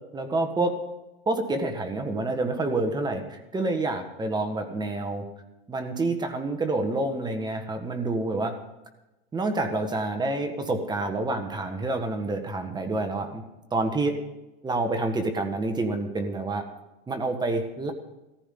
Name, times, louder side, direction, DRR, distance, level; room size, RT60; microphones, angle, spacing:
voice 1, 0.1-0.8 1.2-5.2 5.7-8.6 9.3-13.4 13.7-14.2 14.6-16.7 17.1-17.9, right 2 dB, 15° right, 6 dB, 1.5 m, -28 dB
17.0 x 14.5 x 3.9 m, 1.0 s
supercardioid pair, 135°, 30 cm